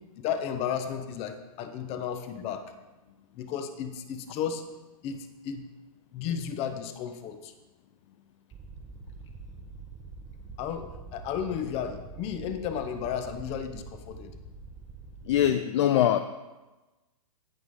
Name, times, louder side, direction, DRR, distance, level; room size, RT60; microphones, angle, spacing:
voice 1, 0.2-2.7 3.3-4.6 5.0-5.7 6.1-7.5 10.6-14.3, left 8 dB, 30° left, 9 dB, 1.0 m, -33 dB
sound 1, 8.5-15.4, right 3 dB, 20° right, 1.0 m, -45 dB
voice 2, 15.2-16.2, left 11 dB, 50° left, 10 dB, 0.5 m, -22 dB
17.0 x 6.1 x 3.7 m, 1.1 s
hypercardioid pair, 125°, 20 cm